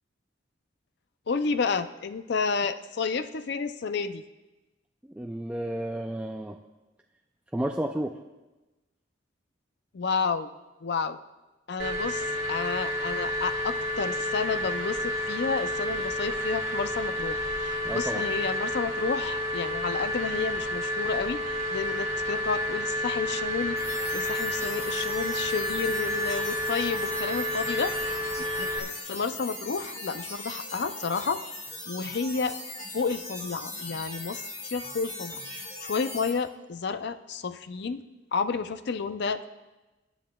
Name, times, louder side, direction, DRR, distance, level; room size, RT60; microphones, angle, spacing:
voice 1, 1.3-4.2 9.9-10.5 10.8-11.2 11.7-23.8 24.1-28.0 28.6-31.4 31.9-32.5 32.9-38.0 38.3-39.5, left 5 dB, 60° left, 11 dB, 0.5 m, -31 dB
voice 2, 5.1-6.6 7.5-8.2 17.8-18.2, right 1 dB, 5° right, 2 dB, 0.3 m, -31 dB
sound 1, 11.8-28.8, left 1 dB, 65° right, 1.8 m, -30 dB
sound 2, 23.8-36.3, left 2 dB, 35° left, 1.8 m, -39 dB
20.5 x 9.2 x 2.3 m, 1.1 s
head